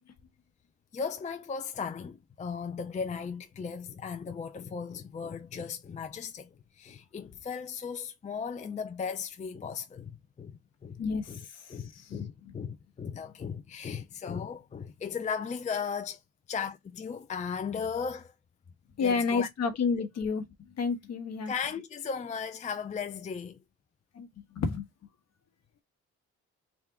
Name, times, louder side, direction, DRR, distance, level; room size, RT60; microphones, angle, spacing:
voice 1, 0.9-11.0 11.3-11.4 11.7-16.2 16.5-18.3 19.0-19.5 20.0-20.1 21.5-23.6, left 6 dB, 25° left, 0.5 m, -36 dB
voice 2, 19.0-20.4 20.8-21.5 24.2-24.3 24.6-24.8, left 5 dB, 60° left, 1.2 m, -29 dB
3.6 x 2.5 x 4.6 m
cardioid pair, 90°, 30 cm